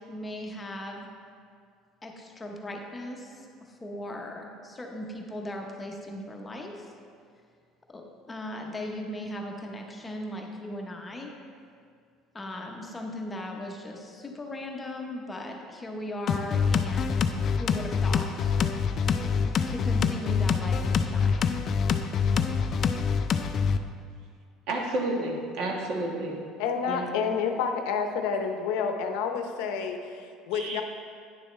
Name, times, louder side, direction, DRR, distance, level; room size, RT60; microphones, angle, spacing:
voice 1, 0.1-1.0 2.0-6.9 7.9-11.3 12.3-17.2 17.5-18.5 19.7-21.6, left 1 dB, 15° left, 1 dB, 0.8 m, -38 dB
sound 1, 16.3-23.8, left 6 dB, 35° left, 0.3 m, -25 dB
voice 2, 24.7-26.4 26.9-27.1 30.5-30.8, right 2 dB, 65° right, 0 dB, 1.4 m, -30 dB
voice 3, 26.6-30.8, left 6 dB, 90° left, 5 dB, 0.7 m, -29 dB
9.6 x 6.9 x 3.2 m, 2.3 s
cardioid pair, 155°, 0 cm